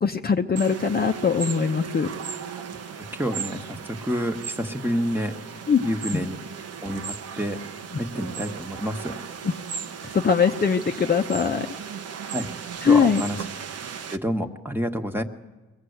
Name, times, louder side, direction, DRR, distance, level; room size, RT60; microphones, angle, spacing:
voice 1, 0.0-2.1 5.7-5.8 6.1-6.2 9.4-9.5 10.1-11.7 12.8-13.2, left 6 dB, 30° left, 4 dB, 0.9 m, -21 dB
sound 1, 0.6-14.2, right 7 dB, 55° right, 1.0 m, -36 dB
voice 2, 3.1-5.3 5.8-6.4 6.8-7.6 8.0-9.2 12.3-12.5 12.9-13.4 14.1-15.2, equal, 5° right, 5 dB, 1.4 m, -28 dB
23.0 x 17.5 x 8.0 m, 1.2 s
cardioid pair, 90°, 30 cm